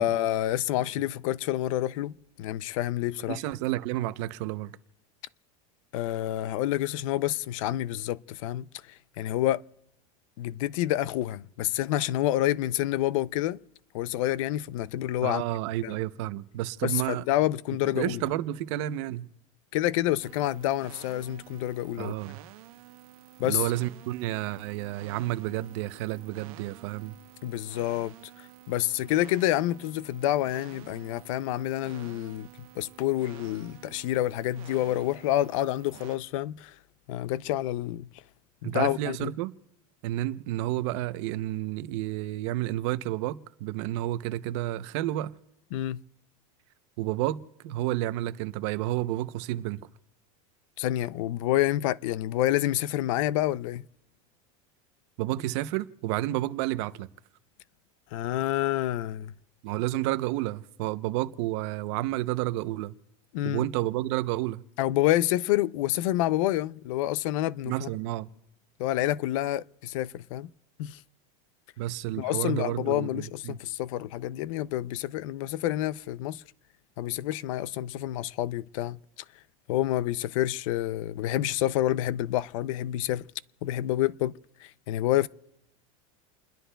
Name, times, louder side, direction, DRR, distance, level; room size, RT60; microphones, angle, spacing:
voice 1, 0.0-2.1 2.4-3.4 5.9-9.6 10.4-13.6 13.9-15.4 15.8-16.0 16.8-18.2 19.7-22.1 23.4-23.6 27.4-32.5 32.8-36.7 37.1-38.1 38.6-39.3 45.7-46.0 50.8-53.8 58.1-59.3 63.3-63.7 64.8-67.9 68.8-70.5 70.8-71.0 72.2-76.4 77.0-79.0 79.7-83.3 83.6-85.3, left 14 dB, 70° left, 0.5 m, -28 dB
voice 2, 3.3-4.8 15.2-17.2 18.0-19.3 22.0-22.4 23.4-27.2 38.6-39.5 40.0-45.3 47.0-49.9 55.2-57.1 59.6-62.9 63.4-64.6 67.7-68.3 71.8-73.6, right 15 dB, 55° right, 0.7 m, -30 dB
sound 1, 20.2-36.2, right 15 dB, 90° right, 0.9 m, -51 dB
29.5 x 21.0 x 2.3 m
supercardioid pair, 165°, 18 cm